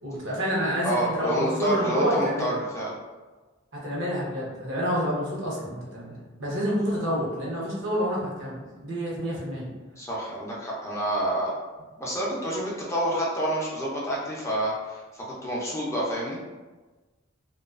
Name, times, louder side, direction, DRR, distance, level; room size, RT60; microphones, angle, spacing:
voice 1, 0.0-2.6 3.7-9.7, equal, 65° right, -5 dB, 0.8 m, -28 dB
voice 2, 0.8-2.9 10.0-11.5 12.0-16.4, right 1 dB, 15° left, -5 dB, 0.4 m, -28 dB
2.3 x 2.3 x 2.3 m, 1.2 s
head